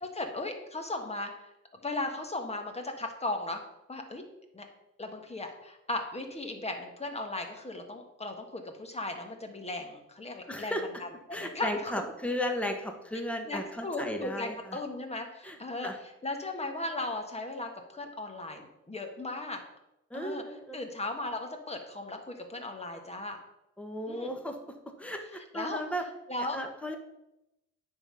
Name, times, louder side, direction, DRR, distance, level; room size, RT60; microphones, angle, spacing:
voice 1, 0.0-1.5 1.8-3.6 3.9-4.2 4.5-4.6 5.0-10.7 11.0-11.9 13.5-15.9 16.2-19.6 20.1-20.4 20.7-23.4 24.1-24.4 25.5-25.8 26.3-26.6, left 2 dB, 20° left, 4 dB, 1.5 m, -36 dB
voice 2, 10.5-10.8 11.3-14.8 15.4-15.6 15.8-16.0 20.1-20.9 23.8-24.6 25.0-26.0 26.5-27.0, equal, 5° left, 4 dB, 1.2 m, -35 dB
9.7 x 3.9 x 5.6 m, 0.89 s
cardioid pair, 90°, 30 cm